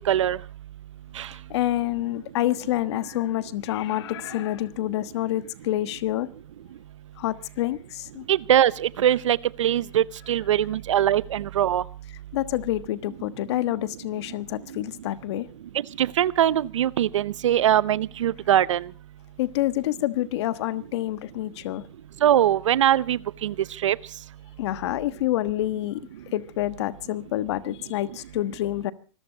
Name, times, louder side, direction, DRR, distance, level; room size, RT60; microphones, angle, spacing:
voice 1, 0.1-0.4 1.2-1.3 8.3-11.8 16.0-18.8 22.2-23.5 23.8-24.0, right 11 dB, 85° right, 0.8 m, -22 dB
voice 2, 1.5-6.3 7.2-8.2 12.3-15.5 19.4-21.8 24.6-26.0 26.3-28.9, left 14 dB, 65° left, 1.4 m, -27 dB
26.0 x 14.0 x 4.0 m
hypercardioid pair, 135°, 15 cm